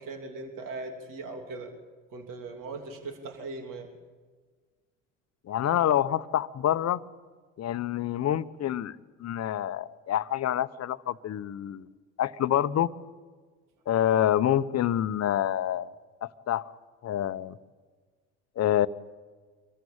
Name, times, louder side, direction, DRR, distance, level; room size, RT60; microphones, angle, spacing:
voice 1, 0.0-1.7 2.1-3.9, right 3 dB, 55° right, 3 dB, 3.2 m, -39 dB
voice 2, 5.5-7.0 7.6-8.9 9.2-11.8 12.2-12.9 13.9-15.9 16.2-16.6 17.0-17.6 18.6-18.9, left 11 dB, 40° left, 14 dB, 1.0 m, -27 dB
25.0 x 14.0 x 8.8 m, 1.5 s
hypercardioid pair, 75°, 38 cm